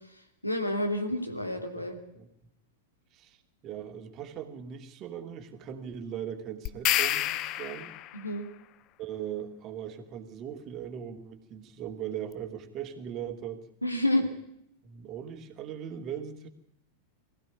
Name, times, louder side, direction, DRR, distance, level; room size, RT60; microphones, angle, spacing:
voice 1, 0.4-1.9 8.1-8.5 13.8-14.3, left 1 dB, 85° left, 3 dB, 2.8 m, -29 dB
voice 2, 3.6-7.9 9.0-13.6 14.8-16.5, right 9 dB, 35° right, 6 dB, 2.7 m, -39 dB
sound 1, 6.7-8.2, left 14 dB, 40° left, 0.9 m, -28 dB
22.5 x 15.5 x 9.8 m, 0.77 s
figure-of-eight pair, 90°, 0 cm